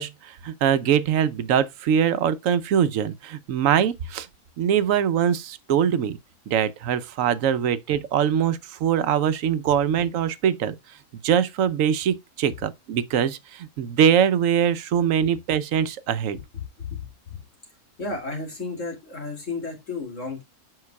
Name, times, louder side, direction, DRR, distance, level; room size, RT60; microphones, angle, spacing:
voice 1, 0.0-4.3 4.6-6.2 6.5-10.8 11.2-16.4, right 8 dB, 80° right, 1.0 m, -22 dB
voice 2, 18.0-20.4, left 3 dB, 70° left, 2.8 m, -32 dB
7.7 x 5.7 x 2.2 m
omnidirectional pair, 1.4 m